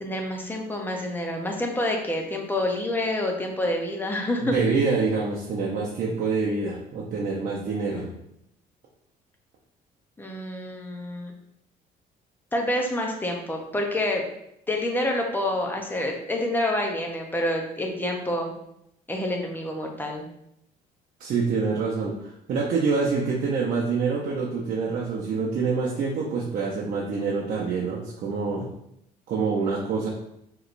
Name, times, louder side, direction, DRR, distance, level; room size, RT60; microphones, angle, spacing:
voice 1, 0.0-4.5 10.2-11.3 12.5-14.2 14.7-18.5 19.1-20.3, left 1 dB, 10° left, 1 dB, 0.7 m, -27 dB
voice 2, 4.4-8.1 21.2-28.7 29.3-30.1, right 4 dB, 55° right, -4 dB, 0.7 m, -26 dB
4.8 x 3.1 x 2.5 m, 0.79 s
cardioid pair, 110°, 17 cm